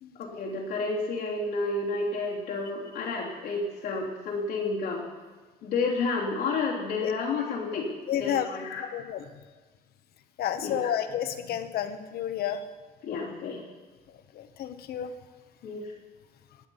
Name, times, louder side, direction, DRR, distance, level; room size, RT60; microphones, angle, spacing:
voice 1, 0.1-5.1 5.6-8.9 10.6-10.9 13.0-13.6 15.6-15.8, left 3 dB, 85° left, -5 dB, 3.0 m, -30 dB
voice 2, 8.1-8.5 8.9-9.2 10.4-12.6 14.3-15.1, left 10 dB, 65° left, 10 dB, 1.1 m, -30 dB
18.0 x 8.5 x 5.5 m, 1.4 s
cardioid pair, 110°, 17 cm